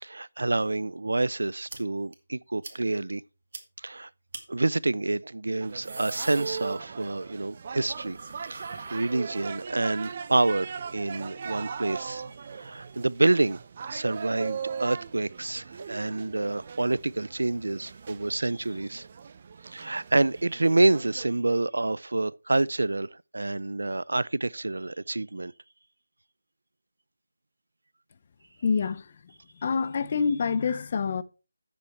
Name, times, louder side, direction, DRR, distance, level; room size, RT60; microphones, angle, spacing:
voice 1, 0.0-3.2 3.8-4.1 4.5-8.2 8.5-12.2 12.5-13.6 13.9-19.1 19.6-25.5, right 2 dB, 90° right, 0.5 m, -27 dB
sound 1, 1.7-1.8 2.1-2.2 2.6-2.8 3.1-3.2 3.5-3.6 4.3-4.4 5.5-7.2 7.5-9.7, right 3 dB, 60° right, 2.3 m, -43 dB
sound 2, 5.6-21.3, right 6 dB, 40° right, 0.6 m, -39 dB
voice 2, 28.6-29.1 29.6-31.2, left 5 dB, 40° left, 0.7 m, -26 dB
10.5 x 7.6 x 4.5 m
figure-of-eight pair, 165°, 0 cm